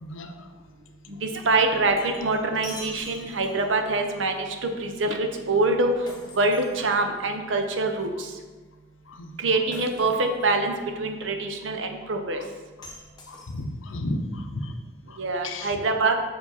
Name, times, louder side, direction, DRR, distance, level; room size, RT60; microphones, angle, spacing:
voice 1, 0.0-0.3 9.2-9.3 13.3-14.7 15.4-15.7, left 1 dB, 75° left, 6 dB, 0.6 m, -32 dB
voice 2, 1.1-5.9 6.4-8.3 9.4-12.4 15.2-16.1, right 3 dB, 70° right, 4 dB, 0.7 m, -25 dB
Shatter, 1.7-3.8 6.1-7.3 9.7-10.5 12.8-13.9, left 1 dB, 20° left, 1.0 m, -44 dB
6.4 x 4.8 x 4.1 m, 1.3 s
head